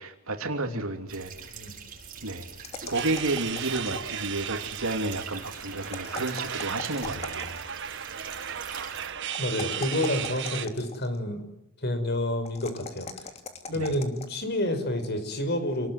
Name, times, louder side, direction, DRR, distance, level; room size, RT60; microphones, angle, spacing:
voice 1, 0.0-1.5 2.2-2.5 2.9-7.6 13.7-13.9, right 2 dB, 80° right, 5 dB, 3.0 m, -31 dB
sound 1, 1.1-9.1, right 6 dB, 40° right, 7.3 m, -44 dB
sound 2, 2.6-4.4 5.8-7.7 9.3-11.2 12.5-14.4, left 4 dB, 30° left, 2.8 m, -41 dB
sound 3, 2.9-10.7, right 9 dB, 55° right, 1.5 m, -35 dB
voice 2, 9.4-11.4 11.8-13.3 13.7-15.9, left 1 dB, 50° left, 9 dB, 5.7 m, -29 dB
29.0 x 20.0 x 9.5 m, 0.83 s
head